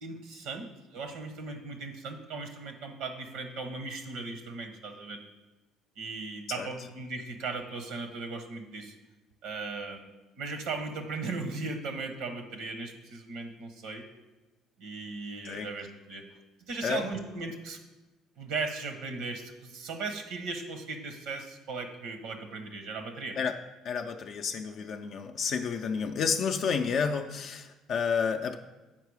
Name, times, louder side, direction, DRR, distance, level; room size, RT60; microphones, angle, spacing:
voice 1, 0.0-5.2 6.0-8.9 9.4-10.1 10.4-14.0 14.8-16.2 16.7-17.8 18.4-23.4, right 3 dB, 80° right, 6 dB, 0.9 m, -37 dB
voice 2, 23.8-28.6, left 6 dB, 55° left, 5 dB, 0.4 m, -30 dB
7.4 x 4.8 x 4.7 m, 1.1 s
cardioid pair, 105°, 0 cm